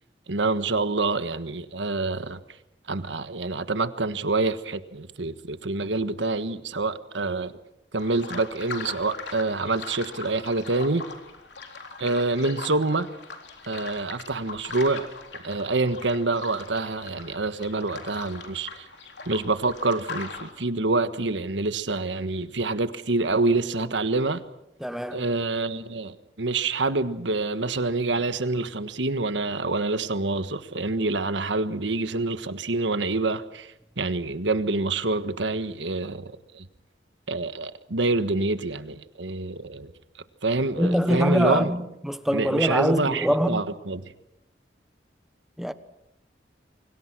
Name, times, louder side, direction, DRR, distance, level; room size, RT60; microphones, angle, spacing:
voice 1, 0.3-2.4 2.9-7.6 7.9-11.0 12.0-13.1 13.7-15.1 15.3-18.9 19.3-24.4 25.1-36.7 37.3-39.9 40.4-41.7 42.3-44.0, right 3 dB, 85° right, 1.5 m, -27 dB
sound 1, 8.0-20.5, left 4 dB, 70° left, 3.7 m, -40 dB
voice 2, 24.8-25.3 40.8-43.6 45.6-45.7, equal, ahead, 1.1 m, -24 dB
29.0 x 24.5 x 6.1 m
head